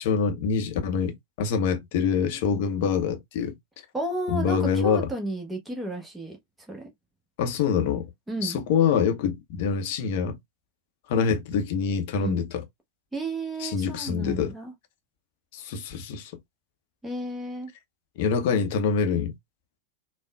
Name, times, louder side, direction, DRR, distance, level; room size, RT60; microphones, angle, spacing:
voice 1, 0.0-3.5 4.3-5.1 7.4-8.1 8.4-10.4 11.1-12.6 13.6-14.5 15.5-16.3 18.2-19.3, left 6 dB, 50° left, 0.6 m, -25 dB
voice 2, 3.9-6.4 6.7-6.9 8.3-8.6 12.2-12.4 13.1-14.7 17.0-17.7, right 2 dB, 5° right, 0.9 m, -32 dB
3.5 x 2.1 x 2.2 m
figure-of-eight pair, 90°, 0 cm